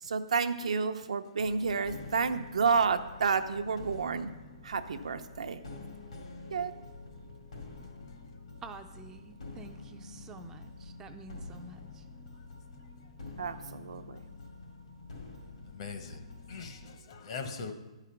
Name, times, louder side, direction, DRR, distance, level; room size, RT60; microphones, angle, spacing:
voice 1, 0.0-4.3 4.6-5.6 6.5-6.7 13.4-14.2, right 5 dB, 85° right, 0.6 m, -30 dB
sound 1, 1.4-16.9, left 3 dB, 80° left, 2.4 m, -47 dB
voice 2, 8.6-12.1, right 5 dB, 15° right, 0.3 m, -49 dB
voice 3, 15.7-16.2 16.5-17.7, left 5 dB, 50° left, 0.9 m, -40 dB
9.9 x 4.9 x 5.7 m
hypercardioid pair, 155°, 3 cm